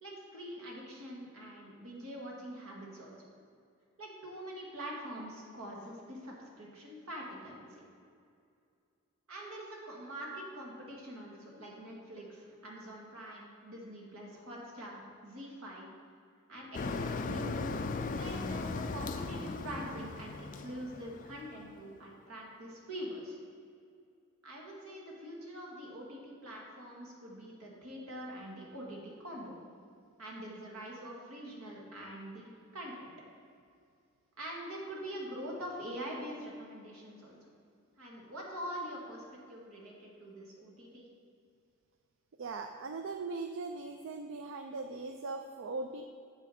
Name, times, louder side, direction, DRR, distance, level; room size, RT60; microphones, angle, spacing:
voice 1, 0.0-3.3 4.0-7.8 9.3-15.9 16.5-17.6 18.2-23.4 24.4-29.5 30.2-33.1 34.4-37.5 38.0-41.0, equal, 80° right, -2 dB, 1.9 m, -44 dB
Motor vehicle (road), 16.7-21.7, left 3 dB, 35° left, 0.4 m, -37 dB
voice 2, 42.4-46.1, right 3 dB, 60° right, 5 dB, 0.4 m, -40 dB
8.4 x 7.4 x 4.2 m, 2.3 s
head